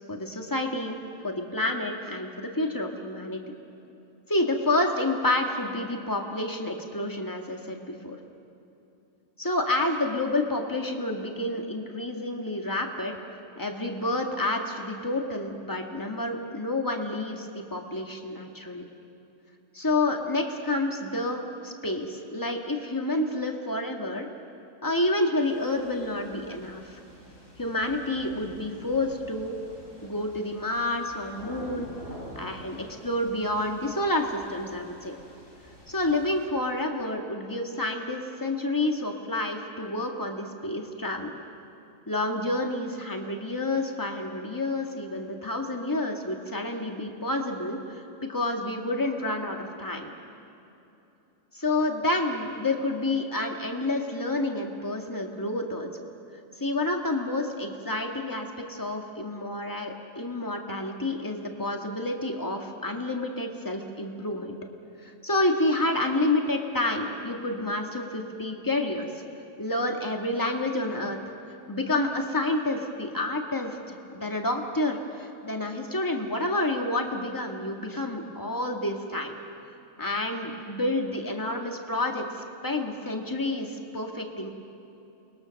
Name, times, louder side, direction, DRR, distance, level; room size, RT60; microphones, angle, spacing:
voice 1, 0.1-1.0 1.2-3.4 4.3-8.2 9.4-13.2 13.6-18.8 19.7-24.3 24.8-27.0 27.6-29.6 30.0-31.9 32.4-35.2 35.9-41.3 42.1-50.1 51.5-56.0 56.6-64.6 65.0-69.1 69.6-71.2 71.7-79.3 80.0-82.2 82.6-84.5, left 2 dB, 15° left, 2 dB, 1.9 m, -29 dB
sound 1, 25.4-36.5, equal, 80° left, 5.6 m, -47 dB
29.0 x 21.5 x 6.6 m, 2.9 s
omnidirectional pair, 1.3 m